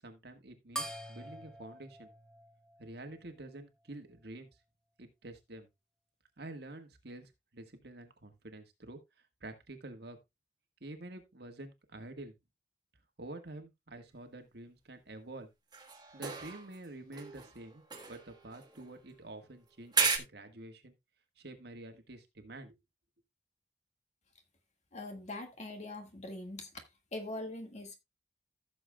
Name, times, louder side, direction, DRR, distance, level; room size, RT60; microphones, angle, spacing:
voice 1, 0.0-2.1 2.8-4.5 5.0-5.7 6.4-9.0 9.4-10.2 10.8-12.3 13.2-15.5 16.1-17.8 18.1-20.9 21.4-22.8, right 2 dB, 60° right, 1.6 m, -48 dB
sound 1, 0.8-3.6, right 1 dB, 5° left, 1.1 m, -45 dB
sound 2, 15.7-16.9 17.1-19.2 19.9-20.2, right 5 dB, 25° right, 1.4 m, -35 dB
voice 2, 24.9-26.8 27.1-28.0, left 2 dB, 40° left, 1.8 m, -42 dB
15.0 x 7.0 x 2.3 m
head